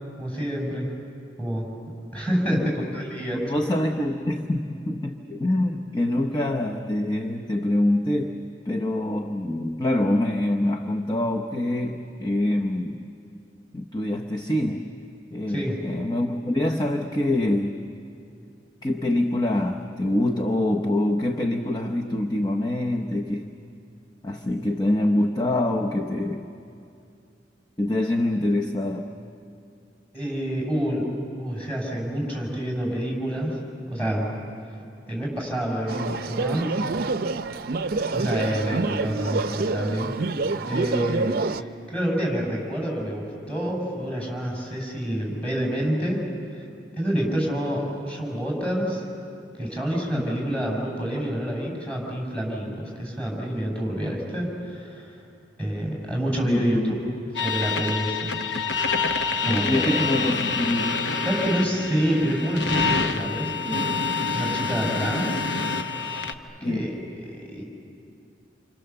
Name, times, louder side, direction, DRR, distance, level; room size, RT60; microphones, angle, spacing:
voice 1, 0.2-0.9 1.4-1.7 2.1-3.6 15.5-15.8 30.1-31.1 31.4-33.6 33.9-34.3 35.1-36.8 38.1-40.1 40.7-46.2 46.9-49.0 49.6-55.1 55.6-57.0 57.4-58.3 58.7-58.8 59.4-60.3 61.2-63.8 64.3-65.3 65.7-65.9 66.7-66.9 67.3-67.6, equal, 5° left, -2 dB, 6.1 m, -27 dB
voice 2, 3.3-8.4 8.7-13.1 13.7-14.9 15.3-17.8 18.8-23.5 24.2-26.5 27.8-29.1 50.1-50.4 56.4-57.1 59.4-61.2 66.6-67.0, left 1 dB, 25° left, 2 dB, 0.9 m, -25 dB
sound 1, 35.9-41.6, right 3 dB, 55° right, 0.6 m, -27 dB
sound 2, 57.4-66.3, left 4 dB, 80° left, 1.1 m, -27 dB
28.0 x 26.0 x 6.9 m, 2.5 s
head